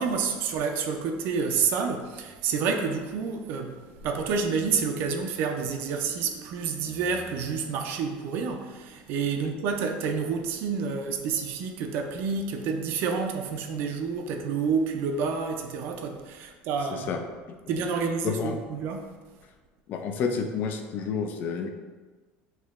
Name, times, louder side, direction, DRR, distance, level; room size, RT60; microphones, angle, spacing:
voice 1, 0.0-17.1 17.7-19.1, right 5 dB, 60° right, 4 dB, 0.4 m, -29 dB
voice 2, 16.9-17.2 18.2-18.6 19.9-21.7, left 5 dB, 45° left, 5 dB, 0.4 m, -30 dB
4.4 x 2.8 x 2.4 m, 1.4 s
supercardioid pair, 120°, 4 cm